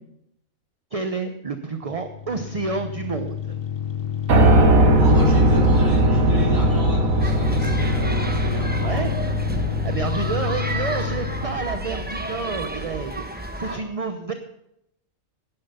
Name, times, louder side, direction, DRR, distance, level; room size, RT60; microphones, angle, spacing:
voice 1, 0.9-3.6 8.8-9.1 9.8-14.3, right 4 dB, 35° right, 7 dB, 0.7 m, -29 dB
sound 1, 1.9-11.7, left 9 dB, 50° left, 0.9 m, -28 dB
Piano, 4.3-12.3, right 1 dB, 85° right, 1.7 m, -20 dB
voice 2, 5.0-9.1 13.6-13.8, equal, 15° left, -3 dB, 6.3 m, -35 dB
sound 2, 7.2-13.8, right 1 dB, 10° right, 0.9 m, -32 dB
11.5 x 10.5 x 5.5 m, 0.79 s
omnidirectional pair, 1.4 m